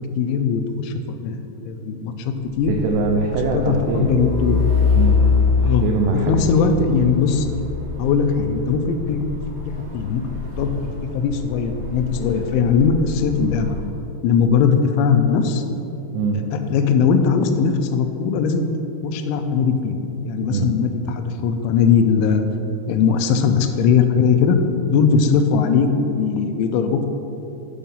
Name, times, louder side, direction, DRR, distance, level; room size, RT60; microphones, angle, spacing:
voice 1, 0.2-2.7 3.5-4.6 5.6-5.8 6.3-7.5 8.0-9.2 9.9-13.8 14.2-15.6 16.5-18.7 19.0-20.0 20.2-22.4 22.9-24.6 24.9-27.1, left 6 dB, 90° left, 7 dB, 3.0 m, -19 dB
Truck, 2.5-13.9, left 5 dB, 50° right, 1.8 m, -24 dB
voice 2, 2.7-4.1 4.9-5.3 5.6-6.7 16.1-16.4 20.5-20.7, right 4 dB, 80° right, 1 dB, 2.4 m, -23 dB
8.7 x 5.6 x 5.4 m, 2.9 s
omnidirectional pair, 5.3 m